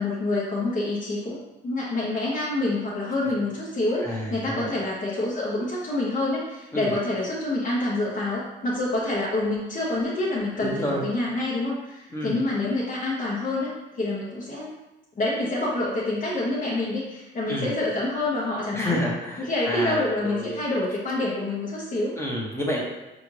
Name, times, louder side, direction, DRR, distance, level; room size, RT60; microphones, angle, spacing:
voice 1, 0.0-1.4 1.6-14.7 15.2-19.0 19.4-22.2, left 2 dB, 40° left, -7 dB, 0.9 m, -27 dB
voice 2, 4.0-4.7 6.7-7.0 10.6-11.0 12.1-12.5 17.5-17.7 18.7-20.6 22.2-22.8, left 1 dB, 15° left, -4 dB, 1.0 m, -29 dB
4.9 x 2.5 x 3.2 m, 1.0 s
cardioid pair, 90°, 20 cm